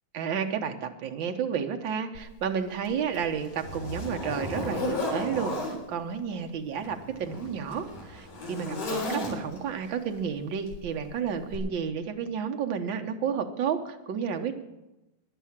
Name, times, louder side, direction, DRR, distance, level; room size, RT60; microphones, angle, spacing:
voice 1, 0.1-14.5, right 7 dB, 65° right, 5 dB, 1.2 m, -31 dB
Zipper (clothing), 2.1-2.3 2.8-5.8 6.7-9.7 10.7-10.9 11.5-11.6, left 2 dB, 85° left, 5.2 m, -34 dB
14.5 x 11.0 x 7.3 m, 0.97 s
omnidirectional pair, 3.6 m